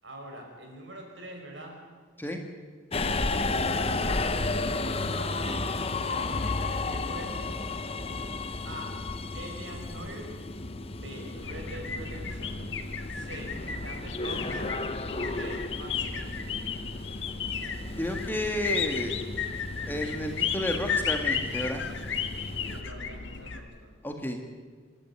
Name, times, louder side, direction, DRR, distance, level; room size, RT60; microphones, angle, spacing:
voice 1, 0.0-1.8 3.3-7.5 8.6-9.0 9.3-10.3 10.9-12.6 13.1-14.7 15.1-16.4 22.6-23.9, right 1 dB, 70° right, 2 dB, 5.5 m, -44 dB
Subway metro underground, 2.9-22.8, left 3 dB, 30° left, 0.9 m, -33 dB
sound 1, 11.3-23.6, left 6 dB, 75° left, 1.8 m, -34 dB
voice 2, 18.0-19.1 19.9-21.8 24.0-24.4, left 1 dB, 10° left, 3 dB, 1.8 m, -31 dB
26.5 x 12.0 x 9.4 m, 1.5 s
head